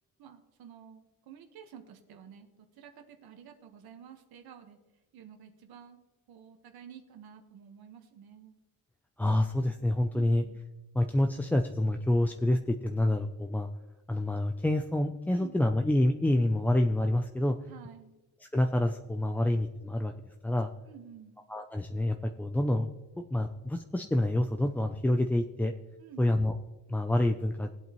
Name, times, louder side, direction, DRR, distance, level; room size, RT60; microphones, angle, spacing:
voice 1, 0.2-4.8 5.1-6.0 6.3-8.5 10.1-10.6 15.3-15.6 17.7-18.1 20.8-21.3 26.0-26.4, right 8 dB, 75° right, 5 dB, 1.4 m, -51 dB
voice 2, 9.2-10.4 10.9-13.7 14.1-17.6 18.5-20.1 20.4-20.7 21.5-22.9 23.3-25.7 26.2-26.5 26.9-27.7, left 1 dB, 5° left, 5 dB, 0.3 m, -27 dB
19.0 x 8.2 x 3.0 m, 1.1 s
cardioid pair, 130°, 37 cm